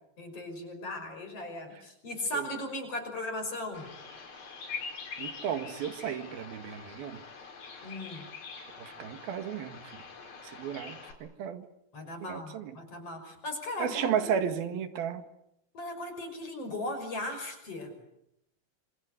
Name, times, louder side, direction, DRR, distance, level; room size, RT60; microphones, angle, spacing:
voice 1, 0.2-3.9 7.8-8.2 11.9-14.5 15.7-17.9, left 1 dB, 35° left, 6 dB, 6.7 m, -37 dB
Bird vocalization bird call bird song, 3.7-11.1, left 5 dB, 70° left, 6.3 m, -44 dB
voice 2, 5.2-7.2 8.8-10.0 10.4-11.7 12.2-12.7 13.8-15.2, right 8 dB, 70° right, 9 dB, 3.5 m, -34 dB
27.5 x 26.5 x 8.1 m, 0.80 s
omnidirectional pair, 4.5 m